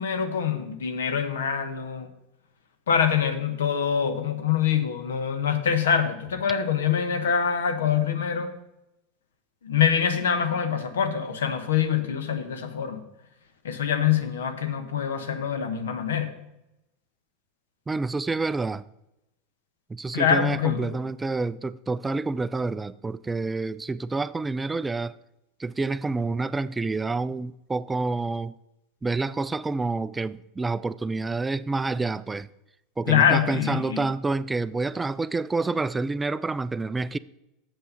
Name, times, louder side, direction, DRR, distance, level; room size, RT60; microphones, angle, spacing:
voice 1, 0.0-2.1 2.9-8.5 9.6-13.0 13.6-16.3 20.1-20.9 33.1-34.0, left 8 dB, 80° left, 1.0 m, -25 dB
voice 2, 17.9-18.8 19.9-25.1 25.6-28.5 29.0-32.5 33.0-37.2, right 3 dB, 15° right, 0.3 m, -28 dB
7.4 x 5.5 x 6.8 m
hypercardioid pair, 90°, 0 cm